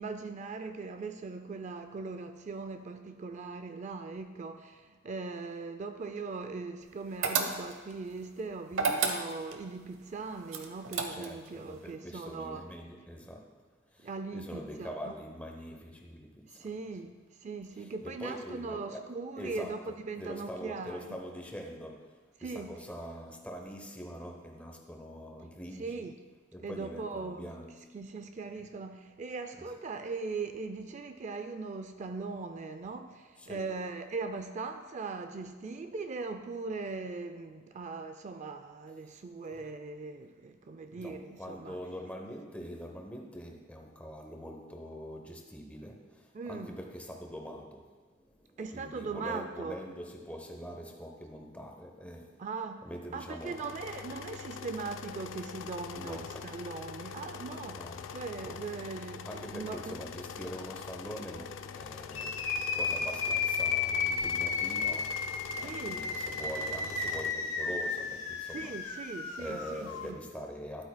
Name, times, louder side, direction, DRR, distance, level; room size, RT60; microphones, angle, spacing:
voice 1, 0.0-12.6 14.0-15.1 16.5-21.0 22.4-22.8 25.8-26.1 26.6-27.4 27.9-41.8 46.3-46.8 48.6-49.8 52.4-52.8 53.1-59.9 65.6-66.0 68.5-70.2, right 4 dB, 35° right, 8 dB, 0.3 m, -40 dB
sound 1, 7.2-7.9 8.7-9.6 10.5-11.5, right 5 dB, 85° right, 0.8 m, -30 dB
voice 2, 11.1-13.6 13.9-16.7 17.8-26.1 26.5-27.8 29.6-29.7 33.4-33.7 41.0-52.4 52.8-53.6 55.9-56.6 57.7-58.7 59.0-65.3 65.5-68.7 69.4-70.9, equal, 5° left, 2 dB, 0.8 m, -44 dB
sound 2, 53.4-67.3, left 6 dB, 65° left, 0.4 m, -44 dB
sound 3, 62.1-70.1, left 5 dB, 85° left, 0.9 m, -33 dB
12.0 x 8.5 x 2.2 m, 1.4 s
head